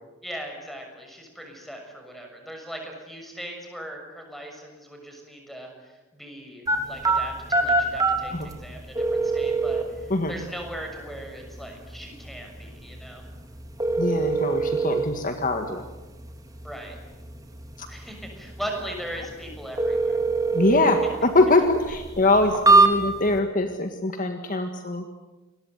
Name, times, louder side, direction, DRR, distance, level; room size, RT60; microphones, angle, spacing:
voice 1, 0.2-13.2 16.6-17.0 17.9-20.2, right 1 dB, ahead, 3 dB, 6.6 m, -39 dB
sound 1, 6.7-23.4, right 3 dB, 15° right, 3.2 m, -26 dB
voice 2, 14.0-15.8 17.8-17.9 20.5-25.1, left 2 dB, 40° left, 6 dB, 1.8 m, -23 dB
28.0 x 22.0 x 8.2 m, 1.1 s
head